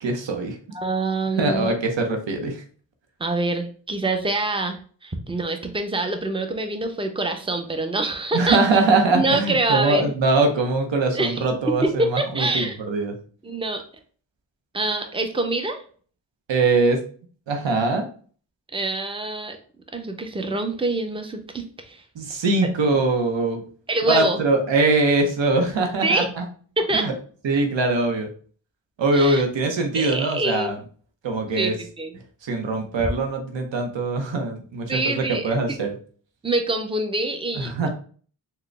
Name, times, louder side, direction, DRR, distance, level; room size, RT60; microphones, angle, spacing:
voice 1, 0.0-0.6 1.4-2.6 8.3-13.1 16.5-17.0 17.5-18.1 22.2-23.6 24.1-26.4 26.9-27.1 27.4-28.3 29.0-30.8 31.2-31.7 32.4-35.0 35.4-35.9 37.6-37.9, right 3 dB, 85° right, 4 dB, 0.8 m, -22 dB
voice 2, 0.7-1.8 3.2-8.6 9.1-10.1 11.1-12.8 13.4-13.8 14.7-15.8 18.7-19.6 19.9-22.0 22.6-22.7 23.9-24.4 26.0-26.3 26.8-27.1 29.1-29.4 29.9-30.8 31.5-32.1 34.9-35.9 36.4-37.9, right 2 dB, 10° right, 5 dB, 0.7 m, -25 dB
3.8 x 2.2 x 3.3 m, 0.43 s
cardioid pair, 45°, 43 cm